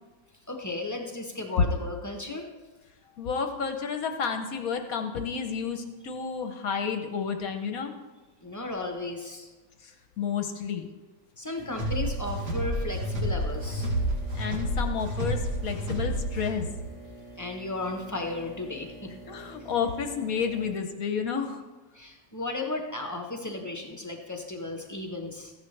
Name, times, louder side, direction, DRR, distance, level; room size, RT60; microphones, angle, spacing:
voice 1, 0.5-2.4 8.4-9.5 11.4-13.9 17.4-19.1 21.9-25.5, left 2 dB, 30° left, 2 dB, 0.3 m, -35 dB
voice 2, 3.2-7.9 9.8-10.9 14.3-16.7 19.3-21.6, left 6 dB, 60° left, 6 dB, 1.0 m, -31 dB
sound 1, 11.5-20.8, right 2 dB, 35° right, 1.4 m, -47 dB
sound 2, 11.7-16.8, equal, 70° right, 2.7 m, -30 dB
14.5 x 10.5 x 3.3 m, 1.2 s
omnidirectional pair, 2.1 m